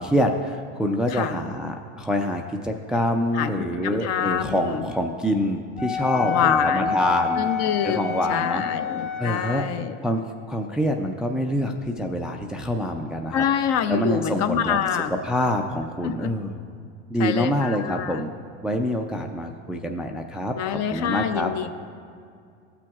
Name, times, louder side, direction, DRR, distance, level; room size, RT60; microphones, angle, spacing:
voice 1, 0.0-7.5 7.8-8.6 9.2-9.6 10.0-13.4 13.9-14.8 15.2-16.5 17.1-18.3 18.6-21.5, equal, ahead, 3 dB, 0.3 m, -26 dB
voice 2, 3.3-4.8 6.1-7.0 7.4-9.9 13.3-15.1 16.0-16.3 17.2-18.2 20.5-21.7, left 9 dB, 45° left, 8 dB, 0.7 m, -26 dB
Wind instrument woodwind instrument, 5.8-9.7, left 5 dB, 25° left, 1.1 m, -27 dB
14.5 x 6.0 x 2.4 m, 2.3 s
hypercardioid pair, 95°, 36 cm